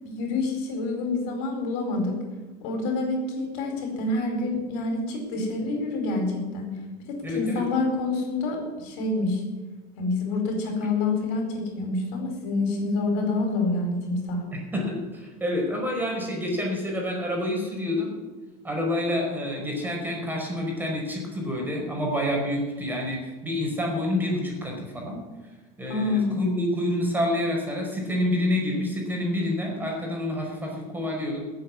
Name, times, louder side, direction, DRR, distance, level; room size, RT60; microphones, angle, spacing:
voice 1, 0.0-2.2 2.6-6.7 7.1-9.4 10.0-14.4 25.9-26.4, left 3 dB, 75° left, 3 dB, 4.5 m, -27 dB
voice 2, 7.2-7.6 14.7-18.1 18.6-25.2 25.8-31.4, left 1 dB, 10° right, -1 dB, 5.2 m, -28 dB
15.0 x 8.0 x 9.7 m, 1.3 s
supercardioid pair, 125°, 20 cm